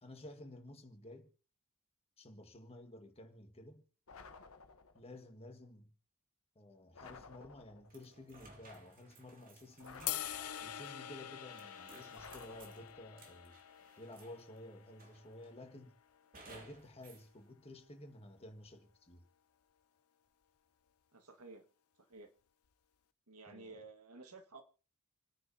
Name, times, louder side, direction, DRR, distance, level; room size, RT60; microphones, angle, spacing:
voice 1, 0.0-1.3 2.2-3.8 4.9-5.9 6.6-10.2 10.6-13.6 14.0-16.0 16.5-19.3 23.5-23.8, left 1 dB, 25° left, 1.8 m, -53 dB
sound 1, 4.1-5.1 6.9-8.0 9.8-11.0 12.1-13.2, left 4 dB, 70° left, 1.1 m, -55 dB
sound 2, 7.9-14.6 15.0-15.6 16.3-17.3, right 2 dB, 40° right, 2.6 m, -59 dB
sound 3, 10.1-16.3, left 12 dB, 90° left, 0.7 m, -46 dB
voice 2, 21.1-21.6 22.1-22.3 23.3-24.6, right 3 dB, 90° right, 1.8 m, -53 dB
28.0 x 9.5 x 2.8 m
head